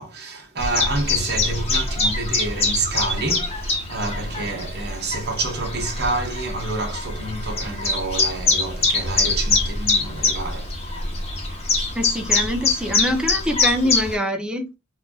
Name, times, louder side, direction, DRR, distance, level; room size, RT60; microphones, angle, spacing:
voice 1, 0.0-10.8, right 2 dB, 50° right, 1.1 m, -28 dB
Chirp tweet, 0.6-14.2, left 3 dB, 30° left, 1.1 m, -24 dB
voice 2, 11.9-14.7, equal, 5° right, 0.6 m, -24 dB
4.3 x 2.6 x 2.3 m
head